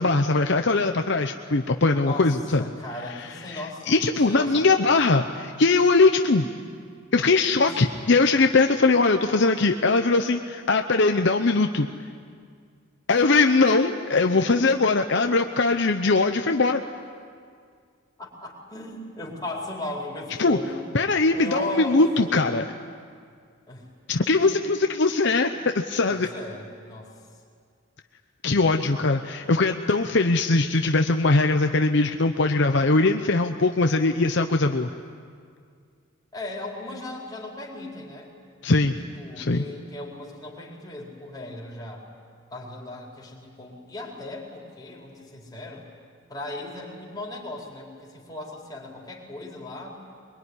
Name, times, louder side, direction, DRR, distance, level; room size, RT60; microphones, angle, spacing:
voice 1, 0.0-2.6 3.5-6.5 7.1-11.9 13.1-16.8 20.4-20.6 20.9-22.6 24.1-26.3 28.4-34.9 38.6-39.0 39.4-39.6, left 3 dB, 60° left, 6 dB, 0.8 m, -21 dB
voice 2, 2.0-5.0 7.5-7.7 14.5-15.2 18.2-20.9 21.3-22.6 23.7-23.9 25.5-25.6 26.1-27.1 28.5-28.6 36.3-38.3 39.2-42.1 42.5-45.9 46.3-49.9, left 1 dB, 20° left, -3 dB, 4.6 m, -37 dB
23.0 x 23.0 x 9.9 m, 2.1 s
head